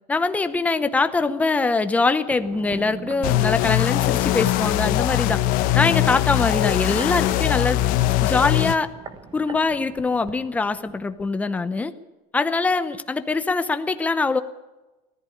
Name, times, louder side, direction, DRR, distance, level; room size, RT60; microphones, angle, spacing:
voice 1, 0.1-5.4 5.7-7.8 8.2-8.9 9.3-11.9 12.3-14.4, left 3 dB, 10° left, 11 dB, 0.7 m, -23 dB
sound 1, 2.2-11.3 11.6-11.7, right 6 dB, 25° right, 1.3 m, -42 dB
sound 2, 3.2-8.7, left 15 dB, 50° left, 0.9 m, -21 dB
19.5 x 14.0 x 9.9 m, 1.1 s
cardioid pair, 180°, 19 cm